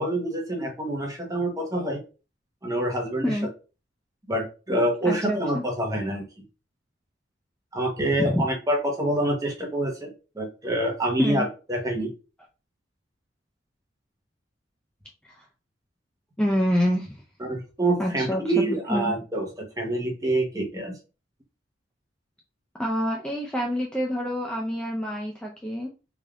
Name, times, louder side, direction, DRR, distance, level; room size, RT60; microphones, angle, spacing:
voice 1, 0.0-2.0 2.6-3.3 4.3-6.2 7.7-10.1 10.4-12.1 17.4-21.0, right 1 dB, 20° right, 2 dB, 1.0 m, -26 dB
voice 2, 5.0-5.6 8.1-8.4 11.2-11.5 15.3-15.4 16.4-17.2 18.0-19.1 22.8-25.9, equal, 5° left, -1 dB, 0.5 m, -27 dB
3.3 x 2.6 x 3.6 m, 0.32 s
head